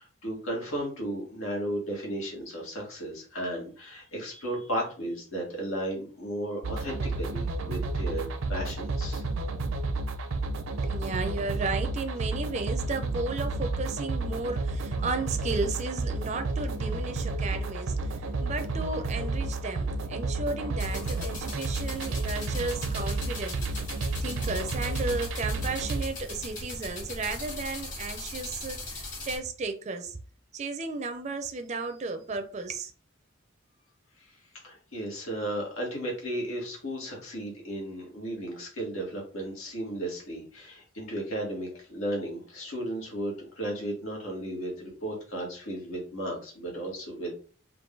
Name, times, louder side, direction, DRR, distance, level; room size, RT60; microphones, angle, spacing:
voice 1, 0.0-9.2 34.2-34.4 34.6-47.4, right 1 dB, 85° left, 1.8 m, -34 dB
sound 1, 6.6-26.0, right 2 dB, 85° right, 0.5 m, -31 dB
voice 2, 10.8-23.6 24.2-30.2 30.5-32.9, right 3 dB, 35° right, 0.4 m, -34 dB
sound 2, 20.8-29.4, left 2 dB, 40° left, 1.8 m, -40 dB
3.8 x 2.6 x 3.7 m
head